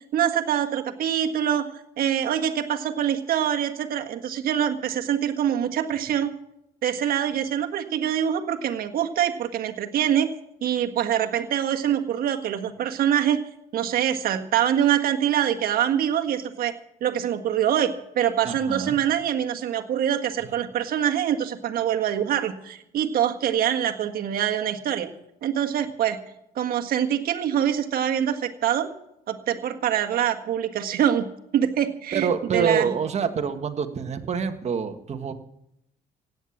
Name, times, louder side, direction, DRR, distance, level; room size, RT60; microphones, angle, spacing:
voice 1, 0.1-1.7 2.0-6.3 6.8-10.3 10.6-13.4 13.7-16.7 17.0-25.1 25.4-26.2 26.5-28.9 29.3-31.3 31.5-32.9, right 10 dB, 60° right, 5 dB, 1.7 m, -24 dB
voice 2, 18.4-19.0 32.1-35.3, right 6 dB, 40° right, 7 dB, 1.6 m, -26 dB
16.5 x 9.5 x 7.3 m, 0.79 s
cardioid pair, 110°, 17 cm